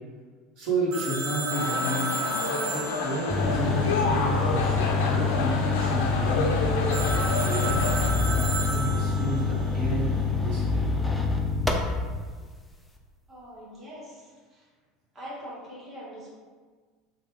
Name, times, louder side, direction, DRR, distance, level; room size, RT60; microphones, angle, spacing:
voice 1, 0.6-2.1 2.7-6.5 6.8-10.9, right 1 dB, 60° right, -6 dB, 1.2 m, -32 dB
Telephone, 0.9-4.5 6.9-9.4, right 2 dB, 75° right, 0.7 m, -33 dB
sound 1, 1.5-8.1, left 4 dB, 75° left, 0.4 m, -29 dB
sound 2, 3.3-12.2, left 4 dB, 5° left, 0.4 m, -26 dB
voice 2, 13.3-14.3 15.1-16.3, equal, 30° right, -6 dB, 1.2 m, -42 dB
3.1 x 2.2 x 3.1 m, 1.5 s
hypercardioid pair, 80°, 0 cm